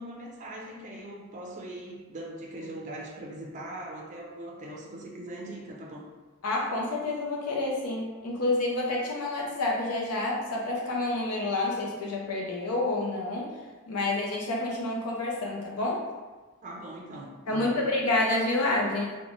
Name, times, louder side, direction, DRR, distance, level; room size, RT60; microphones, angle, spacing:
voice 1, 0.0-6.1 16.6-17.8, right 1 dB, 35° right, -2 dB, 0.4 m, -41 dB
voice 2, 6.4-13.5 13.9-16.0 17.5-19.2, left 2 dB, 80° left, -2 dB, 0.6 m, -28 dB
3.0 x 2.1 x 2.5 m, 1.3 s
head